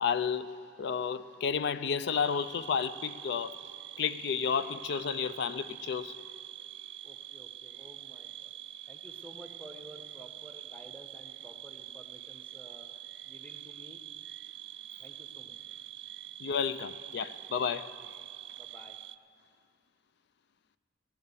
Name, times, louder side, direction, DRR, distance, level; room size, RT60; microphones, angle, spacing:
voice 1, 0.0-3.6 4.0-6.2 16.4-17.9, left 6 dB, 55° left, 0.4 m, -32 dB
sound 1, 2.1-19.2, right 13 dB, 60° right, 0.3 m, -46 dB
voice 2, 7.0-8.5 8.9-12.9 13.2-14.0 15.0-15.6 18.6-19.0, right 1 dB, 10° left, 1.0 m, -52 dB
15.0 x 9.6 x 6.9 m
head